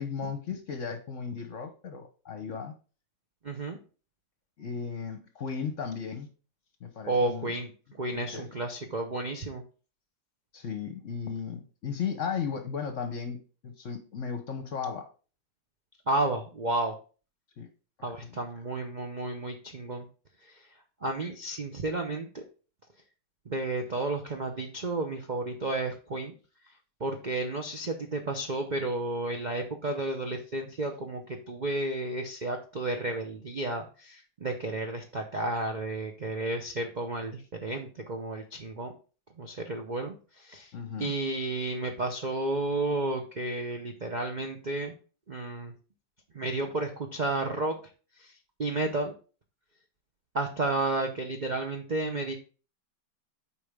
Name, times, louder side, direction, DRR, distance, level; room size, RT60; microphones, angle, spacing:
voice 1, 0.0-2.7 4.6-6.3 6.8-7.5 8.1-8.5 10.5-15.1 17.6-17.7 18.2-18.4 40.7-41.1, left 6 dB, 50° left, 6 dB, 1.0 m, -35 dB
voice 2, 3.4-3.8 7.1-7.7 8.0-9.6 16.1-16.9 18.0-20.1 21.0-22.4 23.5-26.3 27.0-38.9 39.4-40.7 41.0-44.9 45.3-45.7 46.3-47.8 48.2-48.3 48.6-49.1 50.3-52.4, right 2 dB, 75° right, 3 dB, 0.4 m, -32 dB
8.4 x 5.1 x 3.6 m, 0.37 s
omnidirectional pair, 2.1 m